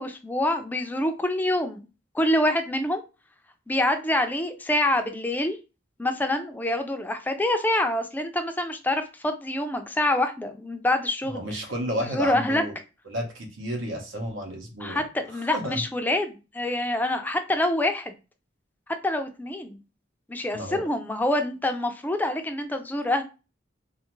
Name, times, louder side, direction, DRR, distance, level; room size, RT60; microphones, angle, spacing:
voice 1, 0.0-1.9 2.1-3.0 3.7-5.6 6.0-11.4 12.1-12.6 14.8-18.1 19.0-19.8 20.3-23.2, left 1 dB, 10° left, 6 dB, 0.3 m, -26 dB
voice 2, 11.2-12.7 13.1-15.0 15.3-15.8 20.5-20.8, equal, 80° right, 2 dB, 0.9 m, -32 dB
2.4 x 2.4 x 3.0 m, 0.30 s
head